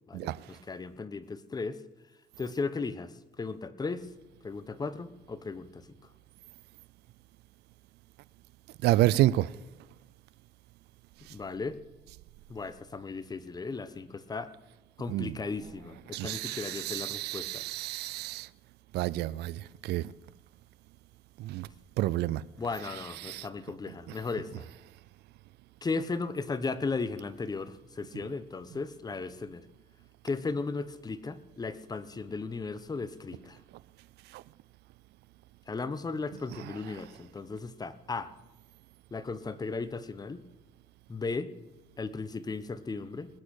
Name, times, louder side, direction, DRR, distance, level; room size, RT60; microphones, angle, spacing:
voice 1, 0.1-1.8 2.4-3.1 3.4-4.1 4.4-5.8 11.3-11.8 12.5-14.5 15.0-17.6 22.6-24.7 25.8-29.6 30.2-33.6 35.7-38.3 39.1-40.4 41.1-41.5 42.0-43.3, left 4 dB, 25° left, 1.1 m, -36 dB
voice 2, 8.8-9.5 15.1-15.3 16.1-18.5 18.9-20.0 21.4-21.7 22.0-22.4 23.2-23.5 34.3-34.4, right 16 dB, 80° right, 0.5 m, -29 dB
20.0 x 8.5 x 6.5 m
cardioid pair, 110°, 17 cm